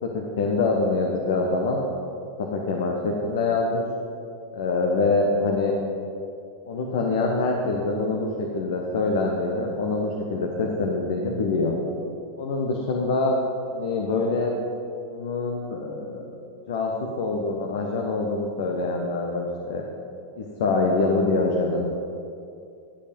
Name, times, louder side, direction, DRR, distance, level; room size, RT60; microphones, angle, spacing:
voice 1, 0.0-1.8 2.4-3.8 4.5-5.7 6.7-11.7 12.4-13.3 13.7-14.5 15.1-16.3 16.7-19.8 20.3-21.8, left 3 dB, 55° left, 0 dB, 1.2 m, -25 dB
13.0 x 8.5 x 5.4 m, 2.5 s
figure-of-eight pair, 90°, 0 cm